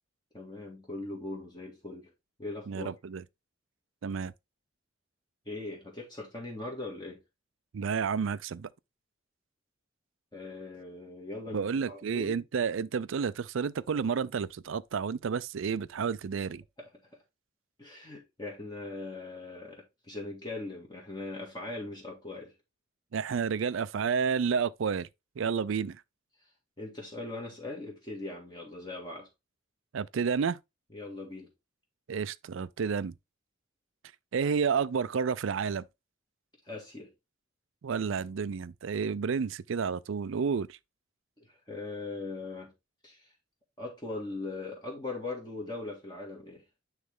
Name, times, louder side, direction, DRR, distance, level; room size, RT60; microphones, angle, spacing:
voice 1, 0.3-2.1 2.4-2.9 5.5-7.2 10.3-12.4 16.8-16.9 17.8-22.5 26.8-29.3 30.9-31.5 36.7-37.1 41.4-42.7 43.0-43.3 43.8-46.6, left 2 dB, 20° left, 1.8 m, -40 dB
voice 2, 2.7-3.2 4.0-4.3 7.7-8.7 11.5-16.6 23.1-25.1 25.4-26.0 29.9-30.6 32.1-33.1 34.3-35.8 37.8-40.8, right 6 dB, 75° right, 0.4 m, -30 dB
9.5 x 3.2 x 3.7 m
head